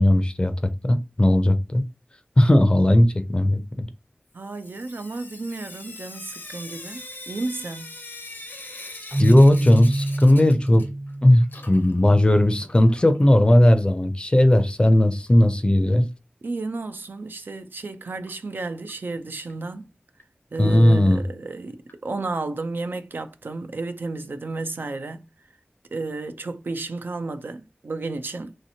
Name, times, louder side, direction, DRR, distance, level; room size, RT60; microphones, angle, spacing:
voice 1, 0.0-1.8 2.4-3.9 9.2-10.9 11.2-16.0 20.6-21.2, left 1 dB, 30° left, 0.4 m, -17 dB
voice 2, 4.3-7.9 16.4-19.9 20.5-25.2 25.9-28.6, right 3 dB, 80° right, 0.4 m, -32 dB
Sink (filling or washing) / Drip, 4.4-11.1 11.4-13.3 14.5-14.6 14.9-15.0 15.3-15.4 18.3-18.4 18.9-19.0 19.5-19.6 20.2-20.3 20.9-21.0 21.9-22.0, left 2 dB, 80° left, 0.7 m, -42 dB
Keyboard (musical), 9.1-12.0, right 1 dB, 35° right, 0.9 m, -26 dB
3.1 x 2.8 x 2.7 m
wide cardioid pair, 60°, 3 cm